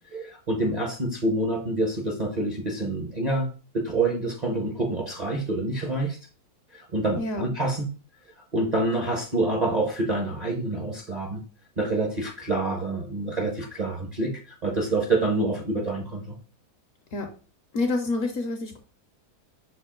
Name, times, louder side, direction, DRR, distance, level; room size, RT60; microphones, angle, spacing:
voice 1, 0.1-3.5 3.7-6.2 6.7-7.8 8.5-11.4 11.8-14.3 14.6-16.4, right 2 dB, 40° right, -1 dB, 0.6 m, -27 dB
voice 2, 7.2-7.5 17.1-17.3 17.7-18.8, left 2 dB, 65° left, 5 dB, 0.9 m, -27 dB
6.0 x 2.4 x 3.6 m, 0.38 s
omnidirectional pair, 1.8 m